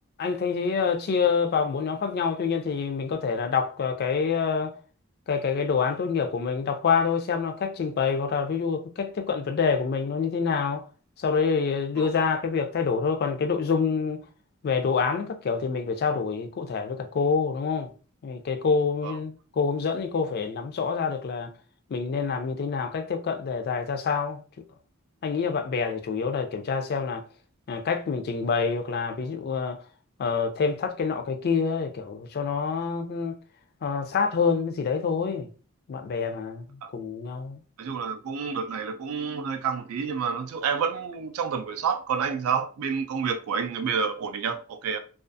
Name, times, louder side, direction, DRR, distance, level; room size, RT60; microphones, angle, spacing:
voice 1, 0.2-4.7 5.3-10.8 11.2-14.2 14.6-17.9 18.2-21.5 21.9-24.4 25.2-27.2 27.7-29.8 30.2-33.4 33.8-35.5 35.9-36.7 36.9-37.6, left 5 dB, 45° left, 0.3 m, -26 dB
voice 2, 37.8-45.0, right 6 dB, 75° right, 0.3 m, -29 dB
2.4 x 2.3 x 2.5 m
head